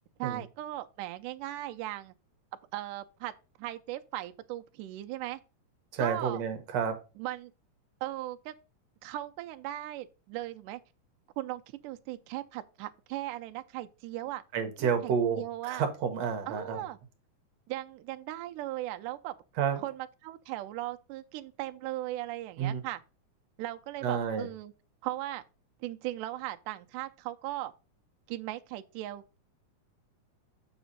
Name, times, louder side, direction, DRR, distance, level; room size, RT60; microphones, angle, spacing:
voice 1, 0.2-2.1 2.7-3.3 3.6-5.4 6.0-6.4 7.2-7.5 8.0-8.5 9.0-10.8 11.4-14.4 14.8-15.8 16.5-17.0 17.7-19.3 19.8-23.0 23.6-24.7 25.0-25.4 25.8-27.7 28.3-29.4, right 15 dB, 85° right, 2.2 m, -38 dB
voice 2, 5.9-7.0 14.5-16.8 19.6-19.8 22.6-22.8 24.0-24.5, right 7 dB, 65° right, 2.1 m, -30 dB
7.1 x 6.0 x 4.0 m
omnidirectional pair, 3.7 m